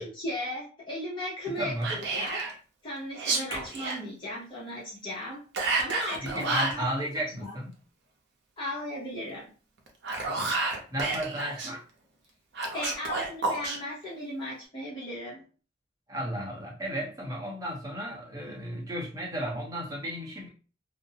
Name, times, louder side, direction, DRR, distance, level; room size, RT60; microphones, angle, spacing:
voice 1, 0.0-2.6 2.8-5.4 5.8-6.8 7.4-7.5 8.6-9.5 12.7-15.4, left 1 dB, 25° left, -7 dB, 0.8 m, -36 dB
voice 2, 1.5-2.0 6.2-7.7 10.9-11.8 16.1-20.5, equal, 20° right, -2 dB, 0.7 m, -34 dB
Whispering, 1.8-2.5 3.1-4.0 5.5-6.8 9.9-11.7 12.5-13.8, right 3 dB, 60° right, 0.6 m, -30 dB
2.4 x 2.0 x 2.7 m, 0.37 s
head